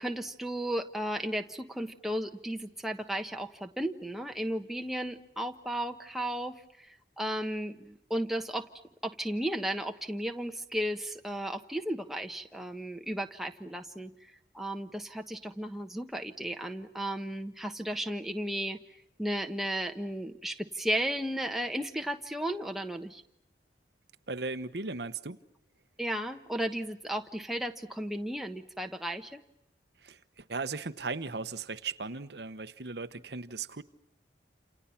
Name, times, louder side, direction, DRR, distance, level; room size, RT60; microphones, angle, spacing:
voice 1, 0.0-8.7 9.0-23.2 26.0-29.4, right 1 dB, ahead, 4 dB, 1.3 m, -34 dB
voice 2, 24.3-25.4 30.0-33.8, right 4 dB, 65° right, 11 dB, 1.1 m, -37 dB
28.5 x 28.5 x 5.8 m, 0.75 s
head